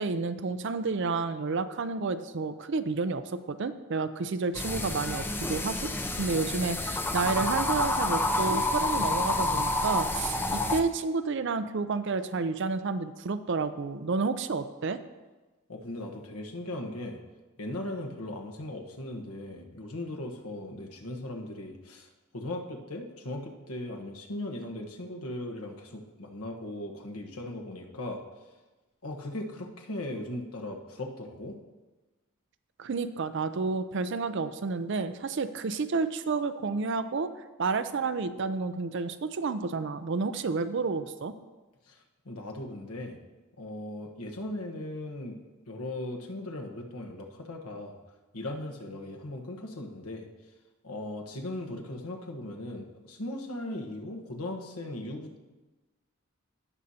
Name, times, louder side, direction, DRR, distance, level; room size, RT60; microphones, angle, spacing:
voice 1, 0.0-5.9 6.2-15.0 32.8-41.4, right 4 dB, 55° right, 12 dB, 0.5 m, -30 dB
sound 1, 4.5-10.8, left 2 dB, 10° left, 0.5 m, -29 dB
voice 2, 15.7-17.2 17.6-28.2 29.0-31.6 41.9-43.2 43.6-48.0 48.3-50.3 50.8-55.4, left 1 dB, 90° left, 2 dB, 1.2 m, -38 dB
17.0 x 6.4 x 2.8 m, 1.2 s
head